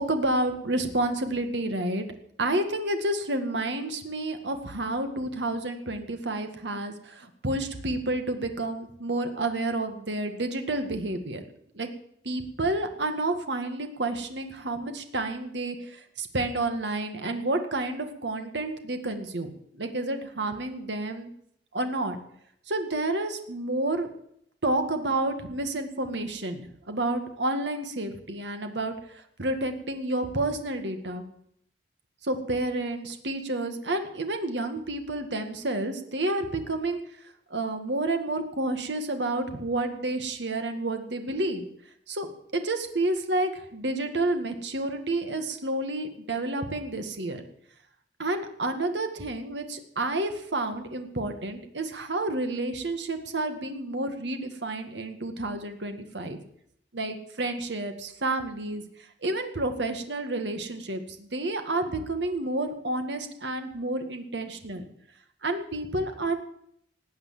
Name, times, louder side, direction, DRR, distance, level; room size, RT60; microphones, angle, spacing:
voice 1, 0.0-2.1 2.4-11.4 11.7-11.9 12.2-21.3 21.7-22.2 22.7-24.1 24.6-28.9 29.4-31.2 32.2-37.0 37.5-41.6 42.1-47.4 48.2-56.4 56.9-58.8 59.2-64.8 65.4-66.4, right 2 dB, 85° right, 6 dB, 1.9 m, -30 dB
19.0 x 8.3 x 7.5 m, 0.70 s
head